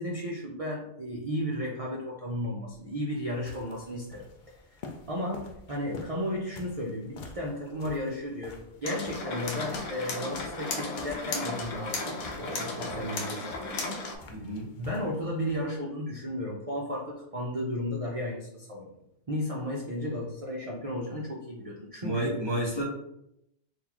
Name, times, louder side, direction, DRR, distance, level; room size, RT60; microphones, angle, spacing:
voice 1, 0.0-4.2 5.1-14.0 14.8-18.9 19.3-22.3, left 1 dB, 70° right, -3 dB, 0.3 m, -34 dB
sound 1, 2.7-15.7, left 3 dB, 65° left, 0.5 m, -49 dB
sound 2, 8.8-14.1, left 3 dB, 85° left, 1.1 m, -35 dB
voice 2, 14.3-14.7 22.0-22.8, right 1 dB, 20° left, -5 dB, 0.9 m, -30 dB
3.9 x 2.7 x 2.9 m, 0.81 s
omnidirectional pair, 1.5 m